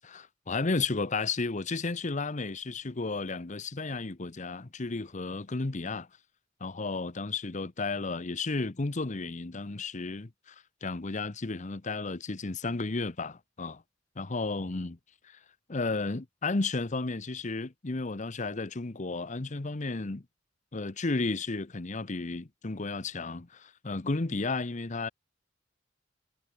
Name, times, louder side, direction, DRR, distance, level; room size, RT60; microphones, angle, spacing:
voice 1, 0.0-6.1 6.6-10.5 10.8-13.8 14.2-15.0 15.2-15.4 15.7-20.2 20.7-25.1, left 3 dB, 40° left, 0.9 m, -33 dB
head